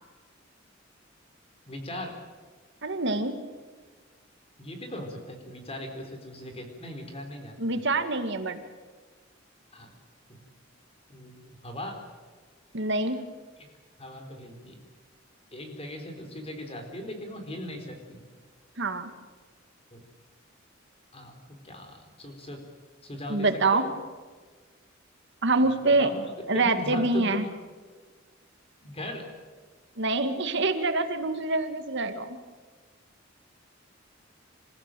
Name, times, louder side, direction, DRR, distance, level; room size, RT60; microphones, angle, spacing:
voice 1, 1.7-2.2 4.6-7.8 9.7-9.9 10.3-10.4 11.1-12.0 13.6-13.7 14.0-14.8 15.5-18.2 19.9-20.0 21.1-22.6 23.0-23.9 25.8-26.2 26.5-27.4 28.8-29.3, left 1 dB, 30° left, 5 dB, 4.3 m, -39 dB
voice 2, 2.8-3.3 7.6-8.6 12.7-13.2 18.8-19.1 23.3-23.8 25.4-26.1 26.5-27.5 30.0-32.3, right 3 dB, 65° right, 8 dB, 2.1 m, -25 dB
27.5 x 15.0 x 9.2 m, 1.4 s
head